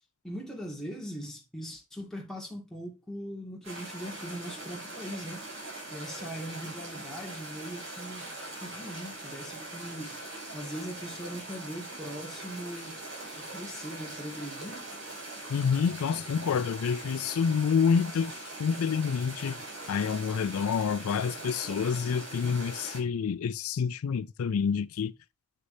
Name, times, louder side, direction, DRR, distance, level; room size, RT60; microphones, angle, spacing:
voice 1, 0.2-5.5 5.9-8.3 8.6-10.2 10.5-13.0 13.3-14.9, equal, ahead, 2.2 m, -40 dB
sound 1, 3.6-23.0, right 2 dB, 65° right, 5.5 m, -42 dB
voice 2, 15.5-18.3 18.6-19.6 19.9-25.1, left 6 dB, 80° left, 0.4 m, -28 dB
9.5 x 6.4 x 2.7 m
head